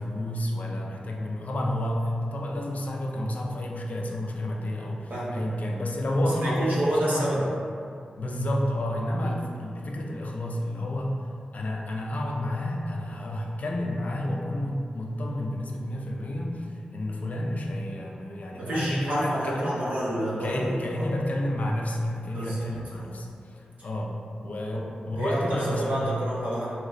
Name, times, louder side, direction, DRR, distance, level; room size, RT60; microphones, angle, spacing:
voice 1, 0.0-7.4 8.2-11.2 11.5-19.7 20.4-26.2, left 1 dB, 60° left, 0 dB, 0.4 m, -30 dB
voice 2, 5.1-5.4 6.4-7.4 9.2-9.3 11.5-11.7 18.5-21.1 22.3-22.7 23.0-23.1 24.7-24.8 25.2-26.7, right 1 dB, 70° right, -7 dB, 0.8 m, -29 dB
3.1 x 2.9 x 2.4 m, 2.4 s
cardioid pair, 60°, 3 cm